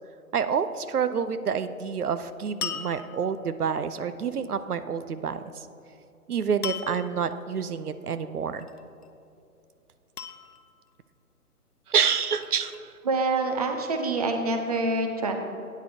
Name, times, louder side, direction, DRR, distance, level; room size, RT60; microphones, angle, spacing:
voice 1, 0.3-5.4 6.3-8.7 11.9-12.9, right 6 dB, 80° right, 12 dB, 0.6 m, -28 dB
sound 1, 2.6-3.5 6.6-7.3 8.6-9.1 10.2-10.9 11.9-12.8, left 7 dB, 85° left, 0.7 m, -37 dB
voice 2, 13.0-15.4, right 2 dB, 25° right, 5 dB, 0.5 m, -26 dB
13.5 x 9.4 x 2.8 m, 2.7 s
figure-of-eight pair, 140°, 45 cm